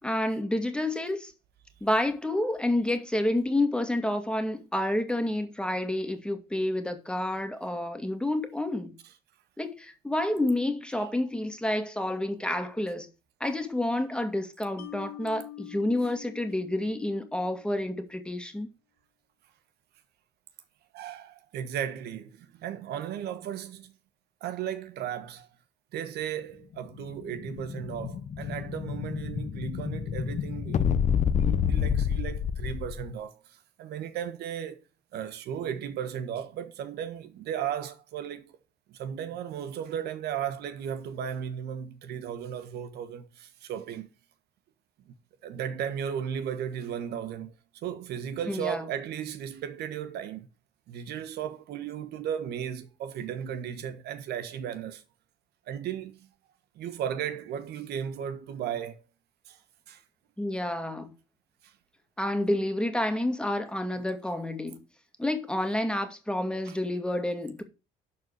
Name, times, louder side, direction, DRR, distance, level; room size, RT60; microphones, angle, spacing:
voice 1, 0.0-1.3 1.8-9.0 9.6-13.1 13.4-18.7 48.5-48.9 60.4-61.1 62.2-64.8 65.2-67.6, left 1 dB, 5° left, 2.0 m, -29 dB
Mallet percussion, 14.8-18.1, left 15 dB, 70° left, 1.7 m, -46 dB
voice 2, 20.9-23.9 24.4-25.5 25.9-31.0 31.4-34.8 35.1-38.5 38.9-44.1 45.1-45.2 45.4-50.5 50.9-55.0 55.7-56.2 56.7-59.0 59.5-59.6 59.9-60.0 61.6-61.7 66.6-66.8, right 9 dB, 75° right, 1.4 m, -35 dB
Explosion, 27.0-33.1, left 8 dB, 45° left, 0.9 m, -28 dB
12.0 x 4.3 x 6.4 m
cardioid pair, 110°, 17 cm